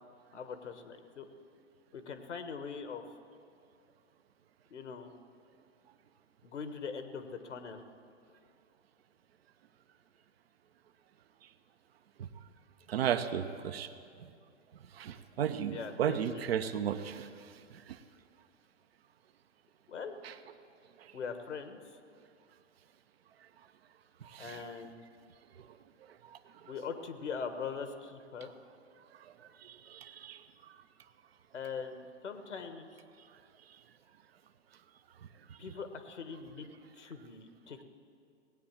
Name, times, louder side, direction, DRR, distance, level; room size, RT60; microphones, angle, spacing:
voice 1, 0.3-1.3 1.9-3.0 4.7-5.1 6.4-7.8 15.7-16.4 19.9-20.1 21.1-21.8 24.4-25.0 26.7-28.5 31.5-32.8 35.6-36.7 36.9-37.8, left 5 dB, 70° left, 8 dB, 1.4 m, -41 dB
voice 2, 12.9-13.9 15.0-17.3 17.7-17.8 20.2-20.3 24.2-24.6 29.6-30.4, right 9 dB, 55° right, 10 dB, 0.9 m, -34 dB
18.5 x 8.7 x 7.3 m, 2.4 s
figure-of-eight pair, 110°, 36 cm